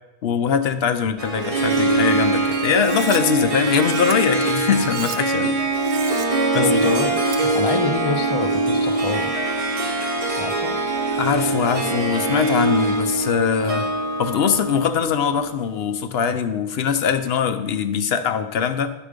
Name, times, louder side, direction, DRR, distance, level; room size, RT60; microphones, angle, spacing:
voice 1, 0.2-5.6 5.9-6.3 6.5-6.7 11.2-13.9 14.2-18.9, left 7 dB, 75° left, 9 dB, 0.9 m, -22 dB
Harp, 1.2-15.7, right 2 dB, 35° right, 0.9 m, -23 dB
Cutlery silverware, 2.7-3.2 3.6-4.1 4.7-5.2 5.7-6.3 6.6-7.4, right 7 dB, 70° right, 0.9 m, -36 dB
voice 2, 6.5-9.4 10.4-10.8, left 4 dB, 35° left, 7 dB, 0.6 m, -26 dB
11.0 x 5.0 x 5.1 m, 1.0 s
omnidirectional pair, 1.0 m